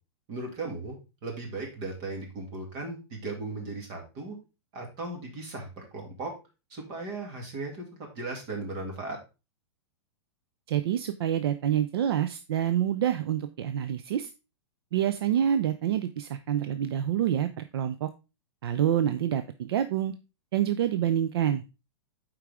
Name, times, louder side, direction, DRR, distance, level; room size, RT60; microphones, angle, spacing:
voice 1, 0.3-1.0 1.2-4.4 4.7-6.3 6.7-9.2, right 2 dB, 30° right, 1 dB, 2.3 m, -37 dB
voice 2, 10.7-14.3 14.9-18.1 18.6-20.1 20.5-21.7, right 10 dB, 60° right, 10 dB, 0.6 m, -27 dB
8.4 x 4.7 x 3.6 m, 0.29 s
supercardioid pair, 165°, 14 cm